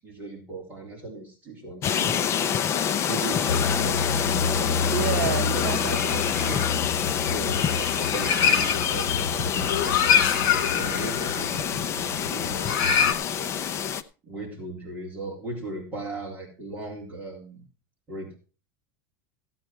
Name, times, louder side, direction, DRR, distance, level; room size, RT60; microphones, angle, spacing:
voice 1, 0.0-2.3 3.1-5.0 5.5-6.3 7.2-13.5 14.2-17.6 18.1-18.3, right 2 dB, 15° right, -2 dB, 3.7 m, -38 dB
sound 1, 1.8-14.0, left 8 dB, 25° left, 0.6 m, -27 dB
sound 2, 3.5-13.1, left 6 dB, 60° left, 2.6 m, -26 dB
voice 2, 4.9-6.7 10.7-11.0, right 14 dB, 80° right, 7 dB, 0.7 m, -32 dB
15.5 x 8.7 x 4.6 m, 0.34 s
supercardioid pair, 170°, 12 cm